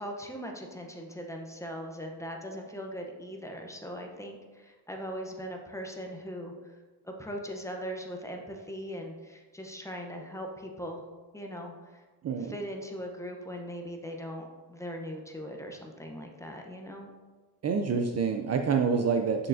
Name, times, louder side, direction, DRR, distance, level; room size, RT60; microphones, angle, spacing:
voice 1, 0.0-6.7 7.0-11.0 11.3-12.0 12.4-17.1, equal, 5° left, 2 dB, 0.7 m, -40 dB
voice 2, 17.6-19.5, right 5 dB, 40° right, 5 dB, 0.4 m, -27 dB
6.6 x 6.5 x 2.6 m, 1.4 s
cardioid pair, 120°, 42 cm